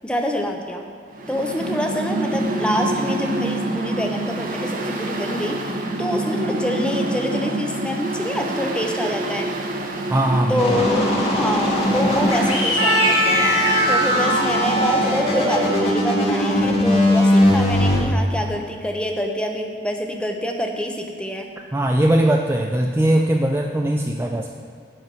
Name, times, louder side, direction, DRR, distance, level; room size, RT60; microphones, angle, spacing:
voice 1, 0.0-0.8 1.3-9.5 10.5-21.5, equal, 5° left, 3 dB, 0.8 m, -26 dB
Mechanical fan, 1.1-16.0, right 1 dB, 50° right, 0.9 m, -27 dB
voice 2, 10.1-10.8 21.7-24.6, right 1 dB, 15° right, 2 dB, 0.4 m, -20 dB
sound 1, 10.6-18.0, left 1 dB, 35° left, 1.8 m, -20 dB
Trumpet, 12.8-16.8, right 1 dB, 80° right, 1.9 m, -23 dB
11.0 x 4.6 x 7.6 m, 2.3 s
head